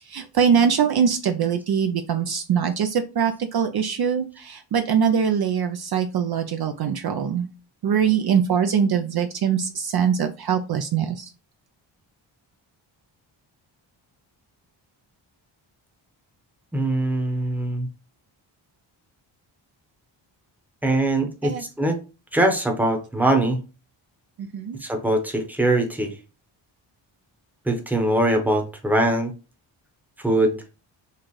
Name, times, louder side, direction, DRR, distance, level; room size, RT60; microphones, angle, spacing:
voice 1, 0.0-7.5 7.8-11.3 21.4-21.6 24.4-24.8, right 7 dB, 55° right, 7 dB, 0.5 m, -22 dB
voice 2, 16.7-17.9 20.8-22.0 22.3-23.6 24.8-26.2 27.7-29.3 30.2-30.6, right 1 dB, 5° right, 4 dB, 0.8 m, -22 dB
4.4 x 2.4 x 3.0 m, 0.32 s
cardioid pair, 70°, 48 cm